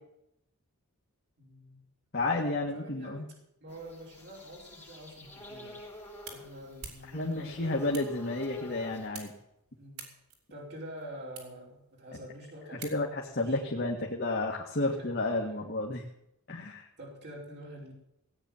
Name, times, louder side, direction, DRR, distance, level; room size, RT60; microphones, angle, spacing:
voice 1, 1.4-1.8 2.5-3.3 3.6-5.8 6.3-7.8 9.8-10.1 10.5-14.1 15.0-15.1 17.0-17.9, equal, 50° right, -3 dB, 5.0 m, -47 dB
voice 2, 2.1-3.2 7.1-9.3 12.9-16.0 16.5-16.9, left 2 dB, 50° left, -1 dB, 1.8 m, -31 dB
sound 1, 3.7-9.1, left 1 dB, 10° left, 7.4 m, -49 dB
sound 2, 5.6-13.4, right 5 dB, 80° right, 4.0 m, -51 dB
17.5 x 9.1 x 7.2 m, 0.80 s
head